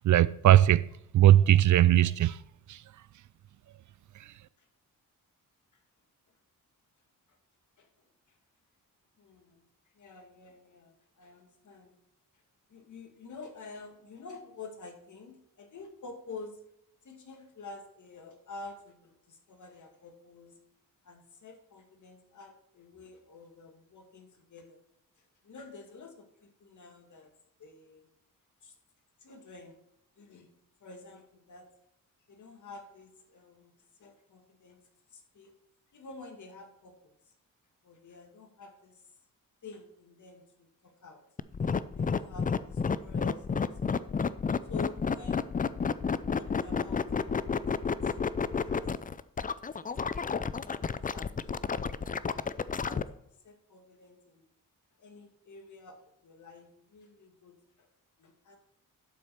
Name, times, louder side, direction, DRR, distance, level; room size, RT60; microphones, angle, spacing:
voice 1, 0.0-0.9 1.1-2.4 2.7-2.8 4.2-4.3, right 12 dB, 60° right, 0.4 m, -20 dB
voice 2, 7.8-8.4 9.2-9.7 9.9-11.9 12.7-16.6 17.0-20.6 21.0-24.8 25.2-27.3 27.6-28.1 28.6-28.8 29.2-29.8 30.2-30.5 30.8-31.7 32.3-33.7 34.0-34.8 35.1-35.5 35.9-37.2 37.8-39.1 39.6-41.2 41.9-44.0 44.7-45.6 46.4-47.6 48.0-48.9 49.7-51.4 51.7-53.0 53.4-54.5 55.0-57.9 58.2-58.6, left 3 dB, 60° left, 2.2 m, -49 dB
sound 1, 41.4-53.0, left 6 dB, 25° left, 0.4 m, -30 dB
12.0 x 5.1 x 4.4 m
cardioid pair, 75°, 34 cm